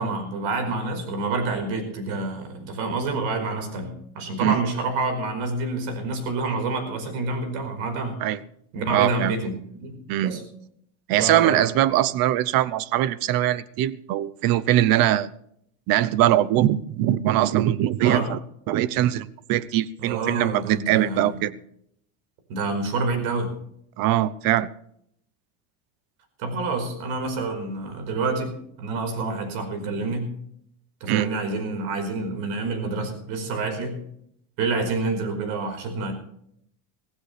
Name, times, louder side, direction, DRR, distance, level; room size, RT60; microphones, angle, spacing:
voice 1, 0.0-8.1 8.7-9.5 9.8-10.4 11.2-11.7 18.0-18.3 20.0-21.3 22.5-23.5 26.4-30.3 31.0-34.0 34.6-36.1, right 3 dB, 75° right, 7 dB, 4.9 m, -28 dB
voice 2, 8.9-9.3 10.1-10.3 11.1-15.3 15.9-18.4 18.7-21.5 24.0-24.7 31.0-31.3, right 13 dB, 50° right, 19 dB, 0.9 m, -22 dB
17.0 x 16.0 x 3.4 m, 0.71 s
supercardioid pair, 130°, 43 cm